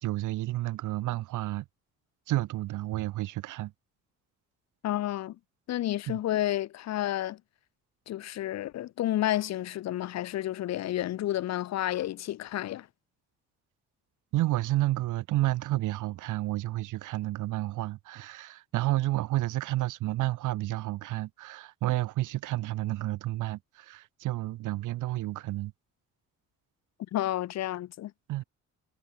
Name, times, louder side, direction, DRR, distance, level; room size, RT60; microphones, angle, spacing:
voice 1, 0.0-1.7 2.3-3.7 6.1-6.2 14.3-25.7 28.3-28.4, right 16 dB, 90° right, 2.4 m, -30 dB
voice 2, 4.8-5.4 5.7-7.4 8.1-12.9 27.1-28.1, left 13 dB, 60° left, 0.6 m, -30 dB
cardioid pair, 90°, 30 cm